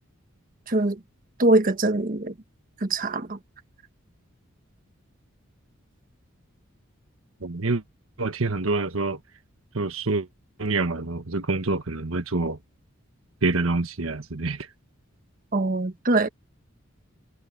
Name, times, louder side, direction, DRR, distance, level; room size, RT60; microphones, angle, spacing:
voice 1, 0.7-1.0 1.4-2.3 2.8-3.4 15.5-16.3, right 2 dB, 40° right, 1.2 m, -23 dB
voice 2, 7.4-7.8 8.2-9.2 9.7-10.3 10.6-12.6 13.4-14.7, right 3 dB, 85° right, 1.4 m, -26 dB
head